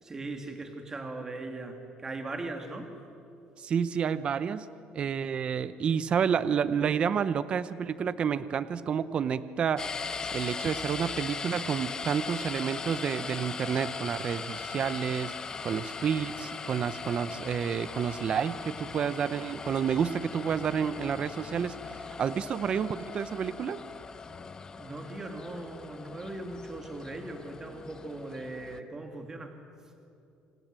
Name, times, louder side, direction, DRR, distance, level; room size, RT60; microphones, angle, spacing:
voice 1, 0.0-2.9 24.8-29.6, right 2 dB, 20° right, 4 dB, 2.5 m, -39 dB
voice 2, 3.6-4.7 4.9-15.3 15.6-23.8, right 7 dB, 40° right, 14 dB, 0.7 m, -30 dB
sound 1, 9.8-28.8, left 5 dB, 25° left, 0.8 m, -39 dB
27.0 x 26.5 x 7.6 m, 2.7 s
cardioid pair, 150°, 3 cm